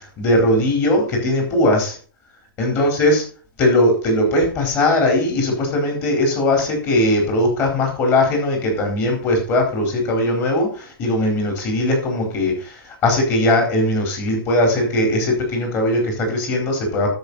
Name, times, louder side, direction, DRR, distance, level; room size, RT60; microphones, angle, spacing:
voice 1, 0.2-2.0 2.6-3.2 3.6-17.1, left 1 dB, 20° left, 1 dB, 4.2 m, -19 dB
10.5 x 7.9 x 4.2 m, 0.38 s
hypercardioid pair, 160°, 13 cm